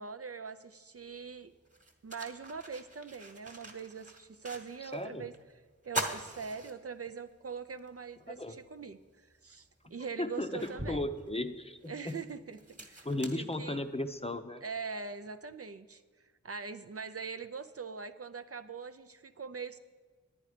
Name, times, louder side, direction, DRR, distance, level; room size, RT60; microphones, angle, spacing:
voice 1, 0.0-1.5 2.0-5.3 5.8-11.1 11.9-13.8 14.6-16.0 16.4-19.8, right 5 dB, 50° right, 10 dB, 0.5 m, -42 dB
sound 1, 1.0-1.1 1.7-5.0 5.3-5.4 5.8-7.3 7.8-7.9 9.3-9.4 10.0-14.2, right 1 dB, 25° right, 1.3 m, -42 dB
voice 2, 4.8-5.3 8.3-8.6 9.8-12.2 13.0-14.6, left 1 dB, 20° left, 8 dB, 0.6 m, -36 dB
10.0 x 9.5 x 5.0 m, 1.4 s
wide cardioid pair, 45°, 30 cm